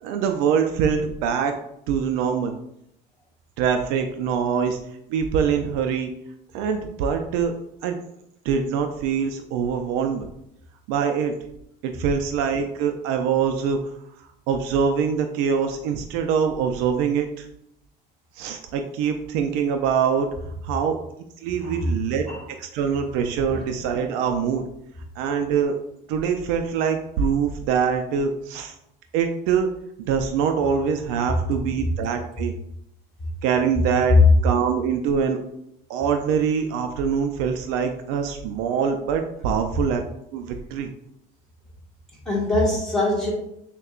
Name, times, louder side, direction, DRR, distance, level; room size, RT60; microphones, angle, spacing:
voice 1, 0.0-1.5 1.9-2.5 3.6-4.8 5.1-6.1 6.5-7.5 7.8-8.0 8.4-10.3 10.9-11.3 11.8-13.8 14.5-17.5 18.4-20.3 20.6-21.0 21.4-24.6 25.2-25.7 26.1-28.7 29.1-29.7 30.1-32.5 33.4-35.4 35.9-40.0 40.3-40.9, right 7 dB, 85° right, 5 dB, 0.4 m, -24 dB
voice 2, 42.2-43.3, left 1 dB, ahead, -6 dB, 1.4 m, -24 dB
6.4 x 2.2 x 2.4 m, 0.77 s
cardioid pair, 150°, 19 cm